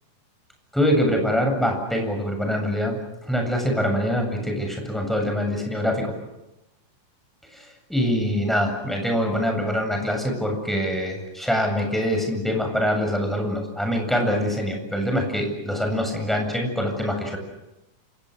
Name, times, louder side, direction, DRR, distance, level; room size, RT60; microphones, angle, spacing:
voice 1, 0.7-3.0 3.3-6.1 7.5-17.4, equal, ahead, 3 dB, 7.7 m, -24 dB
30.0 x 27.0 x 6.7 m, 0.95 s
omnidirectional pair, 3.8 m